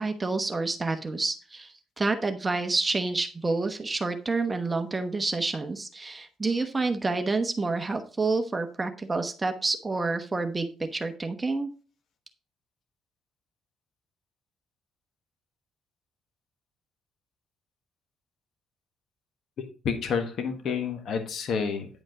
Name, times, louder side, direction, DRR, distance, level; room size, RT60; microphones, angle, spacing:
voice 1, 0.0-11.7, right 3 dB, 20° right, 6 dB, 1.0 m, -28 dB
voice 2, 19.8-21.9, left 6 dB, 65° left, 6 dB, 1.4 m, -29 dB
9.9 x 5.2 x 3.7 m, 0.37 s
cardioid pair, 100°, 0 cm